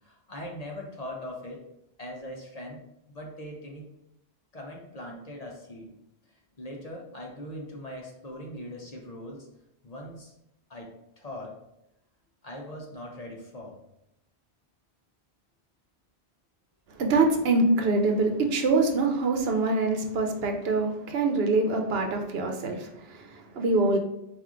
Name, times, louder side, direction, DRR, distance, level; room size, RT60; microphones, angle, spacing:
voice 1, 0.0-1.7 2.0-2.8 3.1-3.8 4.5-5.9 6.3-9.5 9.8-10.3 10.7-11.5 12.4-13.8, left 1 dB, 40° left, -1 dB, 0.8 m, -41 dB
voice 2, 17.0-24.0, right 3 dB, 70° right, 4 dB, 0.8 m, -25 dB
4.4 x 2.5 x 3.6 m, 0.83 s
omnidirectional pair, 1.1 m